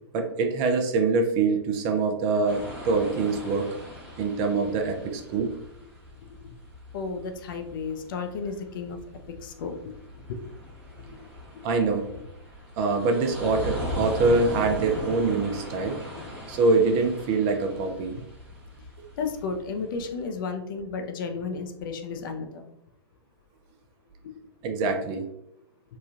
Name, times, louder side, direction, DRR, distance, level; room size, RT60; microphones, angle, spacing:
voice 1, 0.1-3.7 4.2-5.6 11.6-12.1 12.8-16.0 16.5-18.2 24.6-25.2, right 3 dB, 30° right, 4 dB, 0.5 m, -24 dB
sound 1, 2.5-20.2, equal, 5° right, 1.0 m, -39 dB
voice 2, 6.9-9.0 9.3-9.8 10.3-10.4 11.0-11.2 11.5-11.7 13.0-13.1 16.1-16.2 19.2-22.7 24.2-24.4, left 5 dB, 50° left, 6 dB, 0.4 m, -33 dB
3.0 x 2.3 x 2.4 m, 0.80 s
figure-of-eight pair, 110°, 14 cm